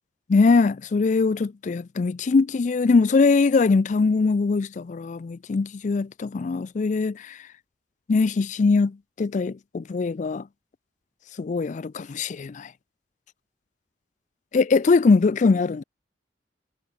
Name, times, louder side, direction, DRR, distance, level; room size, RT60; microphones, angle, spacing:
voice 1, 0.3-7.4 8.1-10.4 11.4-12.7 14.5-15.8, left 4 dB, 45° left, 0.4 m, -21 dB
head